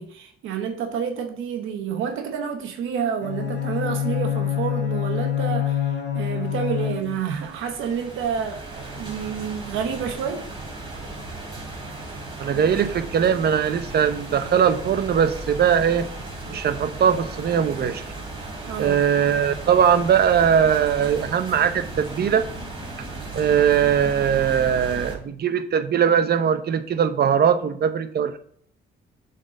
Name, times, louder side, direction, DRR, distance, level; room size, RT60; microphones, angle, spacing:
voice 1, 0.0-10.5 18.7-19.0, right 7 dB, 85° right, 1.0 m, -29 dB
Bowed string instrument, 3.2-7.4, left 11 dB, 65° left, 1.2 m, -26 dB
sound 1, 6.7-25.2, right 2 dB, 25° right, 2.7 m, -36 dB
voice 2, 12.4-16.1 16.5-18.0 18.8-22.4 23.3-28.4, right 8 dB, 55° right, 0.8 m, -20 dB
7.4 x 4.2 x 3.8 m
cardioid pair, 90°, 20 cm